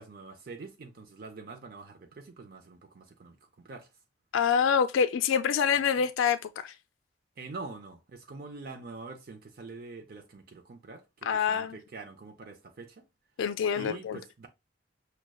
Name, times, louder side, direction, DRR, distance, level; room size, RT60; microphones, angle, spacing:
voice 1, 0.0-3.9 7.4-13.0 13.8-14.5, right 3 dB, 50° right, 0.5 m, -45 dB
voice 2, 4.3-6.7 11.2-11.8 13.4-14.2, left 7 dB, 85° left, 0.3 m, -26 dB
6.1 x 2.1 x 2.3 m
head